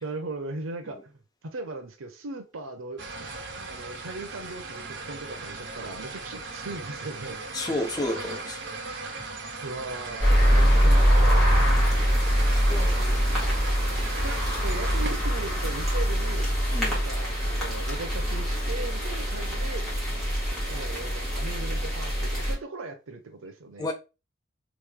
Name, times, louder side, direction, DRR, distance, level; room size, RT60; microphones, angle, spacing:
voice 1, 0.0-3.3 3.7-7.4 9.0-9.1 9.6-11.7 12.9-13.4 14.2-14.4 14.6-19.9 20.7-23.9, right 3 dB, 90° right, 0.7 m, -38 dB
sound 1, 3.0-15.1, right 3 dB, 60° right, 0.9 m, -38 dB
voice 2, 7.5-8.6 10.6-10.8 12.5-13.0 16.7-17.0 23.8-23.9, left 1 dB, 20° left, 0.3 m, -31 dB
sound 2, 10.2-22.5, equal, ahead, 1.6 m, -23 dB
3.2 x 3.1 x 3.5 m
head